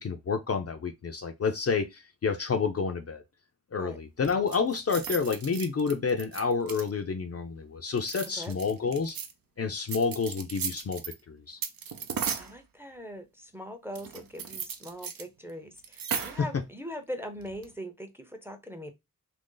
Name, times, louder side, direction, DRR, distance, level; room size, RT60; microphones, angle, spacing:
voice 1, 0.0-3.2 3.7-9.2 9.6-11.0 11.3-11.6 16.1-16.5, left 5 dB, 45° left, 0.4 m, -29 dB
sound 1, 4.2-7.1 7.9-9.3 9.9-11.2 11.6-12.6 14.0-15.2 15.5-15.6 15.8-16.5 17.4-17.7, right 7 dB, 80° right, 0.6 m, -36 dB
voice 2, 12.4-18.9, equal, 5° right, 0.5 m, -41 dB
2.9 x 2.6 x 3.7 m
wide cardioid pair, 105°, 34 cm